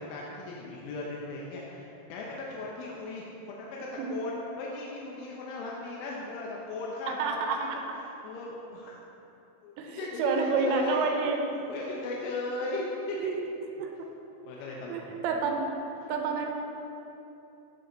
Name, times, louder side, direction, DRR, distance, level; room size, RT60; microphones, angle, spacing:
voice 1, 0.0-9.0 9.6-11.1 11.7-13.3 14.4-15.2, left 2 dB, 85° left, -3 dB, 3.3 m, -37 dB
voice 2, 7.1-8.0 9.8-11.4 13.2-13.5 13.8-14.1 14.9-15.7 16.1-16.5, right 5 dB, 80° right, 3 dB, 2.9 m, -29 dB
14.0 x 5.4 x 3.9 m, 3.0 s
omnidirectional pair, 5.4 m